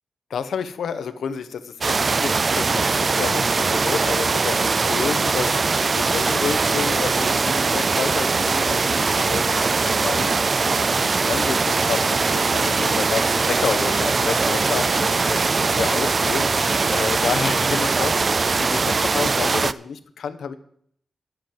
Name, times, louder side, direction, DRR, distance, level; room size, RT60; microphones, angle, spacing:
voice 1, 0.3-10.3 10.8-20.6, left 6 dB, 85° left, 11 dB, 0.9 m, -30 dB
sound 1, 1.8-19.7, right 4 dB, 40° right, 0.4 m, -21 dB
10.5 x 7.8 x 7.6 m, 0.64 s
wide cardioid pair, 105°, 0 cm